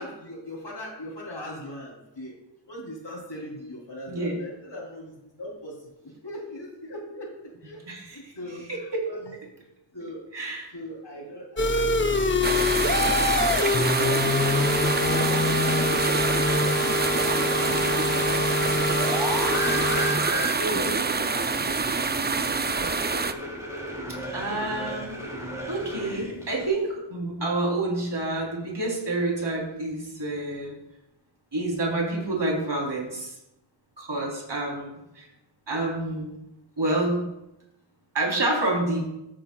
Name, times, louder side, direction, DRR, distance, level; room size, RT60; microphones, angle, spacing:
voice 1, 0.0-2.3 2.7-5.1 5.4-5.8 6.0-7.3 7.6-7.8 8.1-9.3 9.9-10.2 10.7-14.6 14.9-15.5 19.9-21.7, equal, 65° left, -2 dB, 3.3 m, -39 dB
voice 2, 7.9-8.3 8.7-9.0 10.3-10.7 16.9-17.1 24.3-25.1 25.7-30.8 31.5-33.3 34.0-35.3 35.7-36.3 36.8-37.3 38.1-39.0, right 2 dB, 60° right, -2 dB, 3.5 m, -28 dB
sound 1, 11.6-20.2, left 3 dB, 25° left, 0.8 m, -25 dB
sound 2, 12.4-23.3, right 4 dB, 25° right, 0.4 m, -26 dB
sound 3, 17.5-26.7, right 1 dB, 5° right, 2.9 m, -34 dB
14.0 x 8.5 x 2.3 m, 0.88 s
wide cardioid pair, 50°, 47 cm